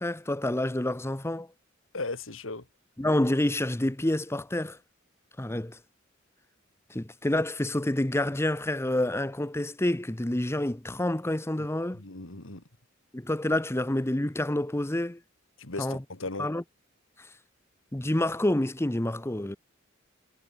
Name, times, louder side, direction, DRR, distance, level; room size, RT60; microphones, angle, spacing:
voice 1, 0.0-1.5 3.0-4.8 5.4-5.8 6.9-12.0 13.1-15.2 15.8-16.0 16.4-16.6 17.9-19.6, left 1 dB, 15° left, 0.9 m, -28 dB
voice 2, 1.9-2.7 11.9-12.6 15.6-16.5, left 3 dB, 90° left, 2.5 m, -36 dB
head